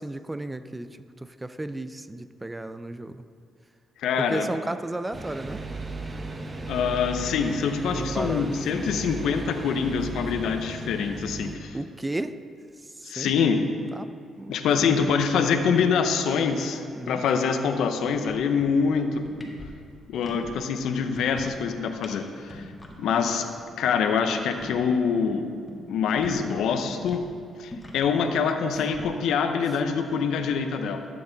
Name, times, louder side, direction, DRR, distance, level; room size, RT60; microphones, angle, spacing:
voice 1, 0.0-3.2 4.2-5.7 7.9-8.5 11.7-12.4 12.8-13.3 13.9-14.1 14.4-15.1 17.0-17.2, right 2 dB, 15° right, 12 dB, 0.4 m, -34 dB
voice 2, 4.0-4.5 6.7-11.8 13.0-13.6 14.5-19.2 20.1-22.7 23.0-23.4 23.8-25.4 25.9-27.2 27.6-31.1, left 6 dB, 80° left, 6 dB, 0.7 m, -25 dB
sound 1, 5.1-11.6, right 3 dB, 30° right, 0.8 m, -35 dB
sound 2, 17.7-17.9 18.1-18.9 19.2-20.5 20.9-21.7 22.0-22.2 22.4-22.9 23.3-23.4 23.6-23.7 24.0-26.6 26.9-29.0, left 1 dB, 20° left, 1.6 m, -42 dB
12.5 x 7.8 x 4.0 m, 2.3 s
cardioid pair, 90°, 0 cm